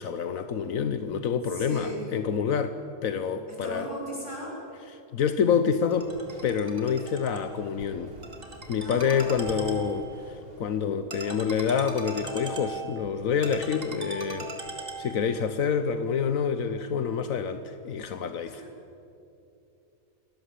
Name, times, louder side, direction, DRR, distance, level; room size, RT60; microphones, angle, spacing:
voice 1, 0.0-3.9 5.1-6.1 6.4-8.1 8.7-14.5 15.0-18.6, left 7 dB, 80° left, 1.3 m, -27 dB
voice 2, 1.5-2.0 3.5-4.6 8.8-9.4 18.4-18.7, right 1 dB, 20° left, 7.3 m, -37 dB
Ringtone, 5.9-15.5, right 2 dB, 45° right, 2.7 m, -40 dB
28.5 x 18.0 x 8.3 m
omnidirectional pair, 1.4 m